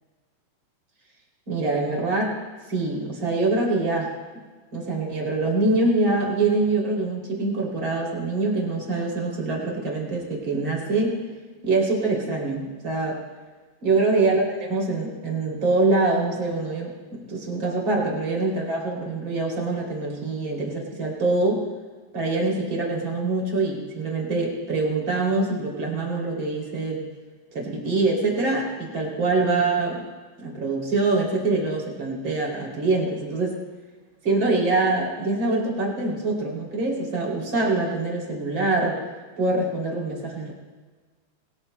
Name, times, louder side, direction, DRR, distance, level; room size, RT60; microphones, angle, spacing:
voice 1, 1.5-2.3 2.7-4.1 4.7-11.2 11.6-13.2 13.8-21.6 22.1-27.0 27.5-30.0 30.4-33.6 34.2-39.0 39.4-40.5, right 3 dB, 30° right, -2 dB, 2.7 m, -24 dB
22.5 x 19.5 x 2.2 m, 1.4 s
omnidirectional pair, 5.7 m